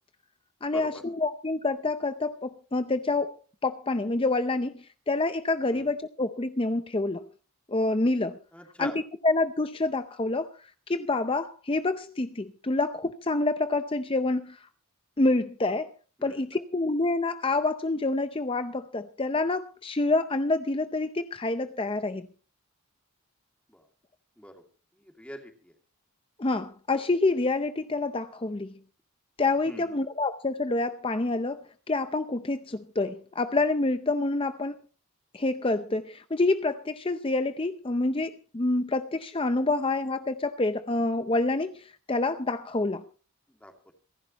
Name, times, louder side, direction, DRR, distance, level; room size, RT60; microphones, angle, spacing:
voice 1, 0.6-3.4 3.6-7.3 7.7-8.4 8.8-8.9 9.2-14.6 15.2-15.9 16.2-22.3 26.4-28.8 29.4-34.8 35.3-43.1, left 2 dB, 25° left, 0.6 m, -27 dB
voice 2, 8.5-9.0 16.2-16.4 23.7-23.8 24.4-24.5 25.0-25.7 29.6-29.9 43.6-43.9, equal, 5° left, 2.4 m, -43 dB
27.0 x 11.0 x 3.0 m
head